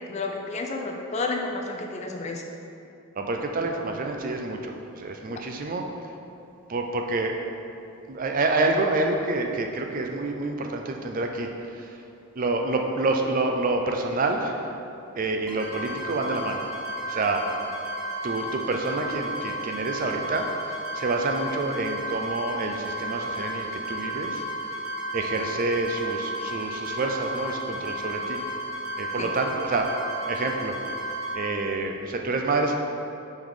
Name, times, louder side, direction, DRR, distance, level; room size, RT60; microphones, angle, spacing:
voice 1, 0.1-2.4 29.2-29.3, left 3 dB, 30° left, 2 dB, 0.4 m, -31 dB
voice 2, 3.2-5.9 6.7-7.5 8.1-12.0 12.4-14.7 15.2-16.6 17.0-17.5 18.2-24.4 25.1-28.4 29.0-29.9 30.3-30.8 31.3-32.7, right 2 dB, 40° right, 3 dB, 0.4 m, -28 dB
sound 1, 15.5-31.3, right 1 dB, 15° right, 1.3 m, -33 dB
5.3 x 3.8 x 4.7 m, 2.7 s
head